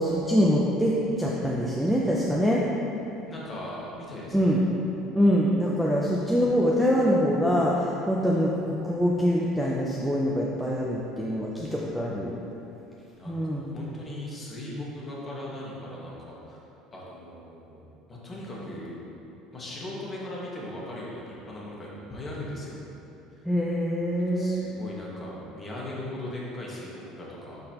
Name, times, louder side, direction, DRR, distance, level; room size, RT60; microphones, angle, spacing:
voice 1, 0.0-2.6 4.3-4.6 5.1-12.3 13.3-13.7 23.4-24.6, equal, ahead, -5 dB, 0.5 m, -24 dB
voice 2, 3.3-4.6 13.2-16.6 16.9-18.9 19.5-22.8 23.4-23.5 24.3-27.6, left 1 dB, 20° left, -5 dB, 1.3 m, -39 dB
11.5 x 4.0 x 2.9 m, 2.9 s
cardioid pair, 160°, 0 cm